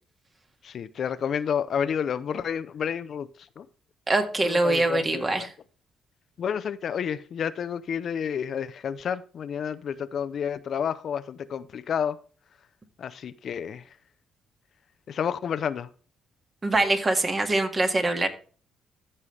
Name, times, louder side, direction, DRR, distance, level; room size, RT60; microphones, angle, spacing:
voice 1, 0.6-3.3 3.6-3.7 4.4-5.5 6.4-12.2 13.0-13.8 15.1-15.9, left 8 dB, 60° left, 0.6 m, -30 dB
voice 2, 4.1-5.5 16.6-18.3, right 2 dB, 30° right, 1.9 m, -23 dB
14.5 x 5.5 x 3.3 m
cardioid pair, 90°, 0 cm